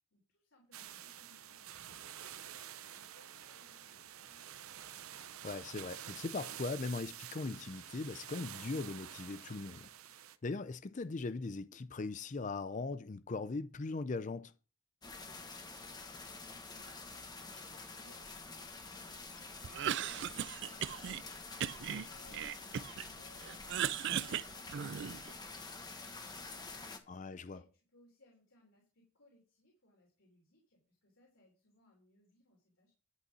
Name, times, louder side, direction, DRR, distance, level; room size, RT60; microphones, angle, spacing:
voice 1, 0.0-4.6 15.1-32.9, left 1 dB, 65° left, 3.3 m, -67 dB
sound 1, 0.7-10.4, right 10 dB, 85° right, 0.7 m, -49 dB
voice 2, 5.4-9.9 10.4-14.5 27.1-27.6, left 3 dB, 35° left, 0.5 m, -39 dB
sound 2, 15.0-27.0, left 3 dB, 20° left, 1.2 m, -48 dB
Cough, 19.6-21.2 21.6-23.1 23.4-25.3, right 9 dB, 55° right, 0.4 m, -37 dB
11.5 x 5.4 x 6.1 m
head